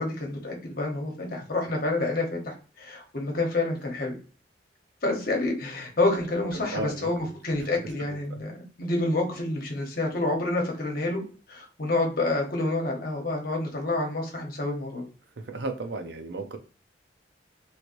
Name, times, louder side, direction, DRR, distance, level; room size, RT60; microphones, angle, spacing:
voice 1, 0.0-4.2 5.0-11.2 11.5-15.0, left 2 dB, 50° left, 1 dB, 0.9 m, -28 dB
voice 2, 6.5-7.1 15.4-16.6, right 2 dB, 75° right, 7 dB, 0.5 m, -34 dB
3.1 x 3.1 x 2.5 m, 0.39 s
head